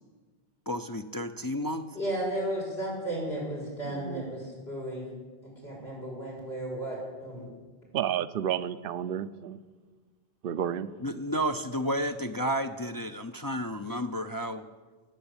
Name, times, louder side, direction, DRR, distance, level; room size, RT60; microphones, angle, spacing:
voice 1, 0.7-1.9 11.0-14.6, equal, 25° left, 6 dB, 0.5 m, -31 dB
voice 2, 1.9-5.1 5.6-7.5, right 1 dB, 90° left, -3 dB, 6.5 m, -34 dB
voice 3, 3.8-4.3 7.9-9.6 10.4-10.9, right 10 dB, 65° right, 14 dB, 0.8 m, -31 dB
19.5 x 8.1 x 8.8 m, 1.4 s
omnidirectional pair, 1.0 m